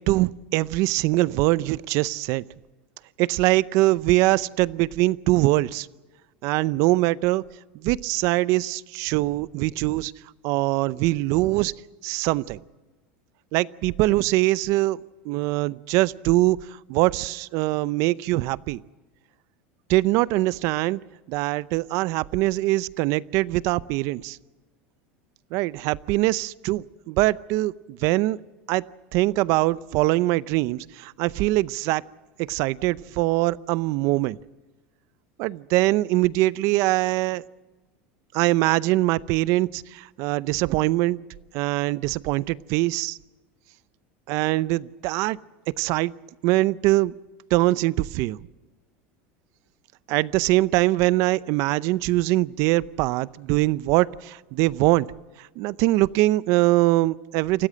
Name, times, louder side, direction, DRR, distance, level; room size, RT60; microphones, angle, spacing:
voice 1, 0.1-2.4 3.2-5.9 6.4-7.4 7.8-10.1 10.4-11.7 12.0-12.6 13.5-15.0 15.2-16.6 16.9-18.8 19.9-21.0 21.3-24.4 25.5-28.4 28.7-28.8 29.1-32.0 32.5-34.4 35.4-37.4 38.3-41.2 41.5-43.2 44.3-45.4 45.8-46.1 46.4-47.1 47.5-48.4 50.1-55.1 55.6-57.7, right 19 dB, 55° right, 19 dB, 0.6 m, -22 dB
28.0 x 15.0 x 7.7 m, 1.2 s
supercardioid pair, 135°, 6 cm